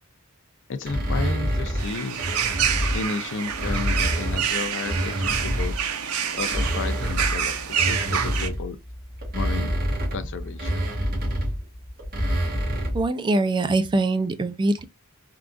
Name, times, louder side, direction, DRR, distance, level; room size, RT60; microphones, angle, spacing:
voice 1, 0.7-2.2 2.9-5.7 6.4-8.8 9.3-9.7 10.1-10.8, left 4 dB, 60° left, 0.5 m, -32 dB
sound 1, 0.8-3.1 3.5-5.9 6.3-13.1, equal, 45° right, 1.2 m, -27 dB
sound 2, 1.8-8.5, right 8 dB, 75° right, 0.6 m, -27 dB
voice 2, 12.9-14.8, right 2 dB, 20° right, 0.3 m, -23 dB
3.6 x 2.4 x 2.3 m
head